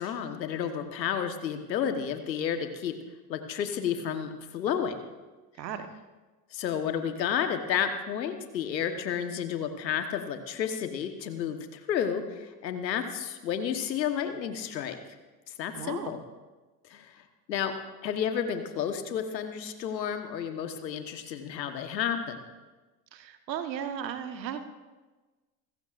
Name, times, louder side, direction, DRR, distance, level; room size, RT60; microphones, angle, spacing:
voice 1, 0.0-2.9 3.3-5.0 6.5-15.0 15.5-16.2 16.9-17.7 18.0-22.4, left 8 dB, 85° left, 7 dB, 1.4 m, -31 dB
voice 2, 15.7-16.2 23.1-24.8, right 8 dB, 85° right, 8 dB, 1.4 m, -36 dB
27.0 x 15.0 x 2.5 m, 1.2 s
hypercardioid pair, 75°, 49 cm